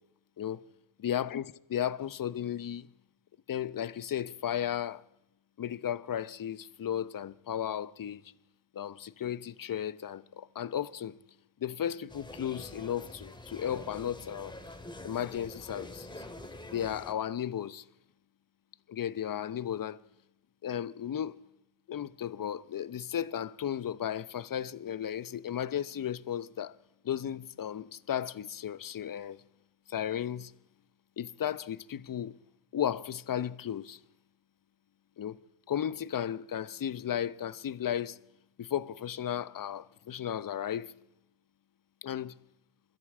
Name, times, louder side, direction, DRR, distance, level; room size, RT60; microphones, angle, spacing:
voice 1, 1.0-2.9 3.5-5.0 5.6-8.2 8.7-11.2 11.6-14.5 15.0-16.2 16.7-17.9 18.9-20.0 20.6-21.4 21.9-26.7 27.0-29.4 29.9-30.5 31.2-32.3 32.7-34.0 35.2-35.4 35.7-38.2 38.6-40.9 42.0-42.3, left 10 dB, 50° left, 1.0 m, -34 dB
sound 1, 12.1-17.1, left 1 dB, 10° left, 2.6 m, -46 dB
22.0 x 14.0 x 8.6 m
cardioid pair, 70°, 42 cm